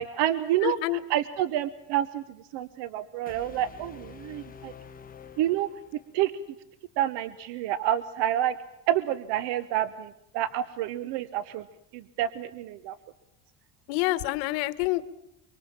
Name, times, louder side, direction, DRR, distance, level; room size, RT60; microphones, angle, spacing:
voice 1, 0.0-2.2 2.5-4.7 5.4-5.7 6.1-6.3 7.0-8.6 8.9-11.6 11.9-13.0, right 12 dB, 65° right, 16 dB, 1.1 m, -28 dB
voice 2, 0.6-1.0 13.9-15.0, left 18 dB, 85° left, 15 dB, 1.4 m, -27 dB
sound 1, 3.3-6.3, left 6 dB, 20° left, 1.5 m, -48 dB
24.5 x 24.0 x 7.4 m, 0.82 s
cardioid pair, 140°, 44 cm